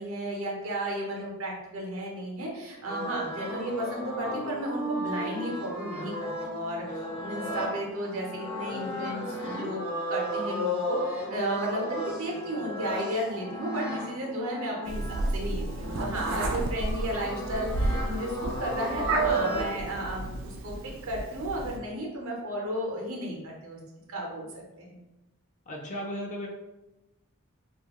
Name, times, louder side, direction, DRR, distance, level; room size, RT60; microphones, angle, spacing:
voice 1, 0.0-23.8 24.1-24.5 24.8-25.0, right 1 dB, 80° right, -1 dB, 0.7 m, -34 dB
sound 1, 2.9-19.8, equal, 75° left, 1.0 m, -34 dB
Meow, 14.9-21.8, right 3 dB, 60° right, 0.3 m, -31 dB
voice 2, 25.7-26.5, equal, 35° left, 0 dB, 0.4 m, -35 dB
2.4 x 2.2 x 2.9 m, 0.99 s
head